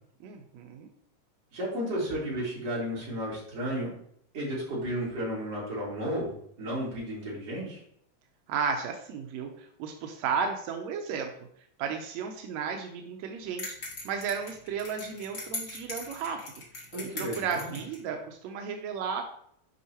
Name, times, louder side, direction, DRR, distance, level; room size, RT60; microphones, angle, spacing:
voice 1, 0.2-0.9 8.5-11.3 11.8-13.6 14.0-16.4 17.2-19.2, right 6 dB, 75° right, 3 dB, 1.6 m, -33 dB
voice 2, 1.5-3.9 4.3-7.8 16.9-17.8, equal, 50° right, -6 dB, 4.0 m, -33 dB
sound 1, 13.6-18.0, left 2 dB, 30° left, 1.6 m, -40 dB
8.3 x 5.4 x 2.9 m, 0.67 s
omnidirectional pair, 3.8 m